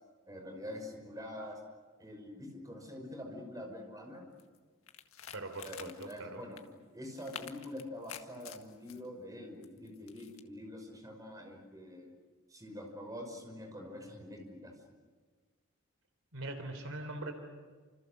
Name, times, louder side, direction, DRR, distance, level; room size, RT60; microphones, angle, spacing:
voice 1, 0.3-1.6 2.0-4.3 5.6-6.6 6.9-12.1 12.5-14.7, left 1 dB, 15° right, 3 dB, 5.7 m, -45 dB
sound 1, 4.4-4.6 4.9-6.2 6.6-6.7 7.1-9.0 9.6-10.4, left 8 dB, 70° left, 1.8 m, -48 dB
voice 2, 5.3-6.4 16.3-17.3, right 2 dB, 70° right, 7 dB, 3.7 m, -41 dB
30.0 x 27.5 x 6.7 m, 1.4 s
head